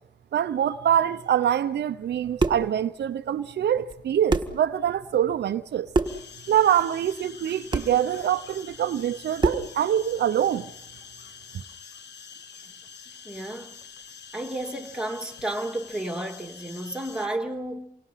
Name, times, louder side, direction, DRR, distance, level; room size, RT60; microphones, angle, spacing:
voice 1, 0.3-5.9 6.5-10.7, right 10 dB, 75° right, 0.8 m, -24 dB
sound 1, 2.1-2.7 3.9-4.0 4.3-4.6 5.9-6.3 7.7-8.0 9.4-9.7, right 3 dB, 25° right, 1.7 m, -25 dB
sound 2, 6.0-17.3, left 6 dB, 75° left, 1.5 m, -46 dB
voice 2, 13.2-13.8 14.3-17.9, right 1 dB, 5° right, 2.6 m, -32 dB
28.5 x 25.0 x 5.8 m
cardioid pair, 90°, 18 cm